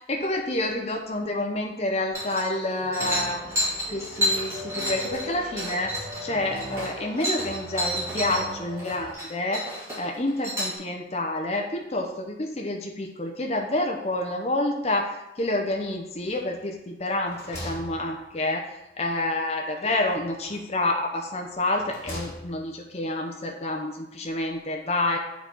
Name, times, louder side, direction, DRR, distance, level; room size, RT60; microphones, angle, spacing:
voice 1, 0.1-5.9 6.2-9.6 10.0-18.7 19.0-25.2, left 2 dB, 35° left, 2 dB, 0.8 m, -28 dB
sound 1, 2.1-2.6 2.9-8.4 8.7-9.3 9.5-10.7, equal, 15° right, 2.6 m, -29 dB
sound 2, 2.1-9.1, equal, 35° right, 2.1 m, -40 dB
sound 3, 16.3-16.8 17.1-18.7 20.0-20.8 21.5-22.8, equal, 15° left, 1.9 m, -41 dB
8.2 x 4.2 x 4.6 m, 0.90 s
head